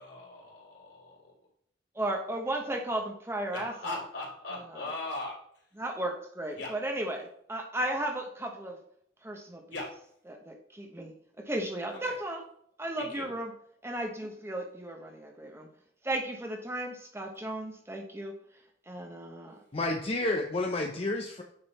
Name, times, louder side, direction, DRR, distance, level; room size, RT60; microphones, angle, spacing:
voice 1, 0.0-1.3 3.5-5.4 6.5-6.7 9.7-9.9 11.9-12.0 12.9-13.3, left 2 dB, 70° left, -3 dB, 2.8 m, -39 dB
voice 2, 1.9-4.0 4.5-4.9 5.8-8.8 9.2-9.8 10.3-11.1 11.5-12.4 12.8-13.5 13.8-15.7 16.0-18.3 18.9-19.6, right 1 dB, 15° right, 2 dB, 0.9 m, -35 dB
voice 3, 19.7-21.4, left 2 dB, 30° left, 2 dB, 0.6 m, -30 dB
8.9 x 3.8 x 4.1 m, 0.69 s
head